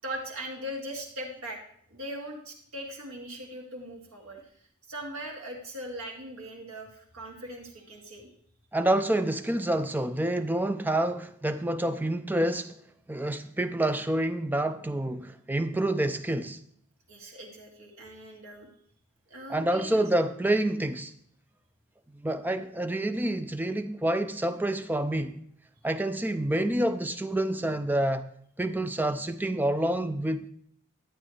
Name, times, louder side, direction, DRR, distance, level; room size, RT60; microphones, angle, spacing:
voice 1, 0.0-1.6 1.9-4.5 4.9-8.3 17.1-18.7 19.3-20.0, equal, 70° right, 2.0 m, -40 dB
voice 2, 8.7-12.8 13.1-16.6 19.5-21.1 22.2-25.4 25.8-28.2 28.6-30.5, right 1 dB, 10° right, 0.3 m, -28 dB
11.0 x 8.5 x 3.2 m
head